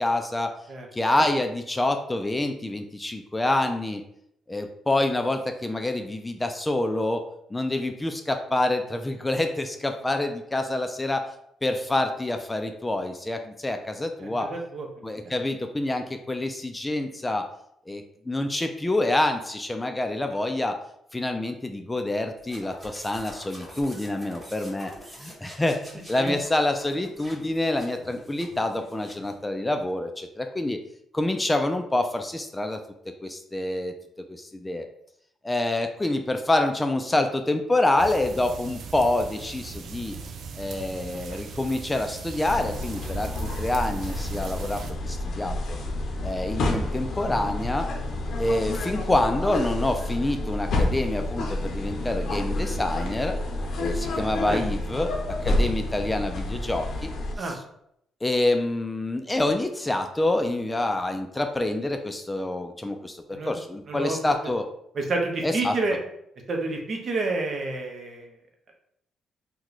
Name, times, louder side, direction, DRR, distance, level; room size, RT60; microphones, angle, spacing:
voice 1, 0.0-0.5 0.9-4.0 4.5-11.3 11.6-14.5 15.0-17.5 17.9-20.8 21.1-24.9 25.2-30.8 31.1-32.8 33.1-34.0 34.3-34.9 35.4-40.2 40.6-45.8 46.2-47.9 48.4-53.4 53.8-57.1 57.4-57.6 58.2-64.7 65.4-65.7, left 2 dB, 15° left, 5 dB, 0.3 m, -27 dB
voice 2, 14.2-14.9 15.2-15.4 26.2-26.4 54.4-54.6 57.4-57.6 63.3-63.6 63.9-64.2 64.9-66.0 66.5-68.3, right 3 dB, 50° right, 2 dB, 0.8 m, -29 dB
sound 1, 22.4-29.4, equal, 10° right, 1.2 m, -46 dB
sound 2, 38.0-44.9, right 4 dB, 65° right, 0.4 m, -39 dB
sound 3, 42.4-57.4, left 1 dB, 60° left, 0.6 m, -29 dB
2.9 x 2.2 x 3.8 m, 0.74 s
cardioid pair, 90°, 0 cm